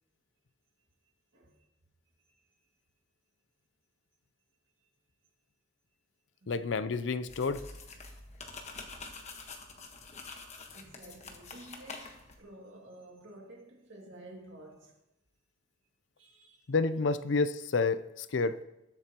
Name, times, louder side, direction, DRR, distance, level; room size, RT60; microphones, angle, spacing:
voice 1, 1.3-1.7 2.3-2.4 6.4-6.8 10.7-15.0 16.2-16.7, right 1 dB, 70° right, 2.3 m, -52 dB
voice 2, 6.5-7.7 16.7-18.6, left 4 dB, 65° left, 0.5 m, -29 dB
sound 1, 7.3-12.4, left 3 dB, 35° left, 1.3 m, -46 dB
20.5 x 7.8 x 3.0 m
head